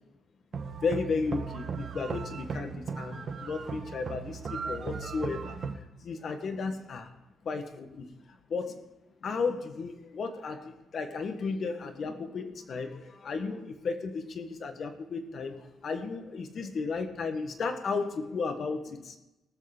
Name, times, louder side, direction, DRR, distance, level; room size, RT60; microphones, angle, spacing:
sound 1, 0.5-5.8, right 5 dB, 50° right, 1.4 m, -37 dB
voice 1, 0.8-7.1 7.4-8.1 8.5-8.8 9.2-19.2, left 4 dB, 55° left, 7 dB, 1.5 m, -34 dB
19.0 x 6.6 x 5.1 m, 0.97 s
cardioid pair, 90°, 0 cm